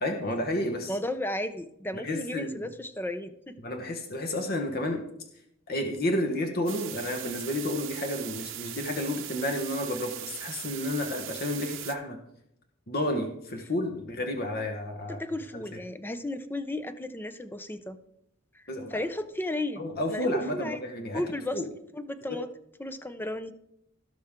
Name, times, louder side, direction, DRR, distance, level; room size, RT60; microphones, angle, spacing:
voice 1, 0.0-1.0 1.9-2.7 3.6-5.0 5.7-12.2 12.9-15.2 15.5-15.6 18.7-19.0 19.8-21.2 21.5-21.7 22.3-22.4, left 1 dB, 50° left, 4 dB, 1.2 m, -31 dB
voice 2, 0.9-3.5 15.1-18.0 18.5-18.6 18.9-19.8 20.1-20.3 20.5-20.8 21.1-21.6 21.9-22.5 22.8-23.5, left 1 dB, 10° left, 11 dB, 0.6 m, -34 dB
sound 1, 6.7-11.9, right 12 dB, 70° right, 1.0 m, -39 dB
17.0 x 6.0 x 3.7 m, 0.76 s
head